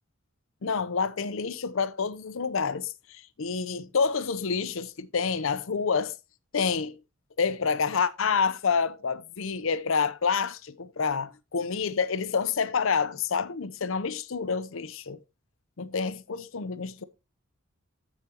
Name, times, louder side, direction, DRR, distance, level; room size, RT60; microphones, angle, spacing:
voice 1, 0.6-6.1 6.5-7.0 7.4-15.2 15.8-17.0, left 5 dB, 65° left, 0.6 m, -28 dB
14.5 x 5.0 x 2.9 m
head